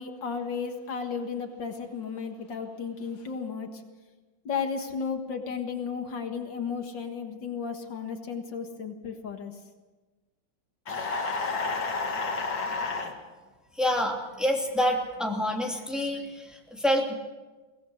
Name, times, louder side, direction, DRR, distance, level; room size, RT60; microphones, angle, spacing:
voice 1, 0.0-3.8 4.5-9.5, left 6 dB, 75° left, 5 dB, 2.3 m, -34 dB
sound 1, 10.9-13.1, left 3 dB, 90° left, 2.9 m, -30 dB
voice 2, 12.7-13.2 13.7-17.1, equal, ahead, 0 dB, 2.7 m, -28 dB
23.5 x 17.5 x 6.5 m, 1.2 s
omnidirectional pair, 2.0 m